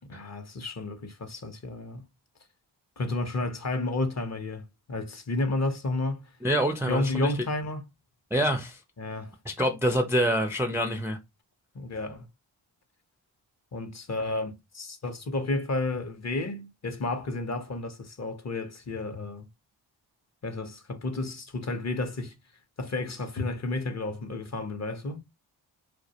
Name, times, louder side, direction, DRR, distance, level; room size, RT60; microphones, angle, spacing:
voice 1, 0.1-2.0 3.0-6.3 6.9-7.8 9.0-9.3 11.7-12.3 13.7-19.5 20.4-22.4 22.8-25.2, left 2 dB, 35° left, 0.6 m, -31 dB
voice 2, 6.4-7.3 8.3-8.8 9.5-11.2, equal, 5° right, 0.3 m, -26 dB
2.3 x 2.1 x 2.7 m
cardioid pair, 45°, 48 cm